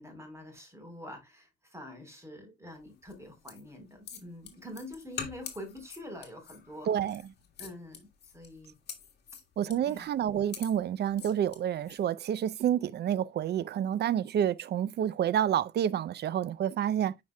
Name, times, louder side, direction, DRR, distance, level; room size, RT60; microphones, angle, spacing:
voice 1, 0.0-6.9 7.6-8.7 9.9-10.1, left 1 dB, 15° right, 4.0 m, -46 dB
sound 1, 3.0-12.0, left 7 dB, 55° left, 1.7 m, -46 dB
voice 2, 6.9-7.2 9.6-17.2, right 10 dB, 55° right, 0.6 m, -29 dB
9.6 x 5.3 x 2.2 m
cardioid pair, 90°, 20 cm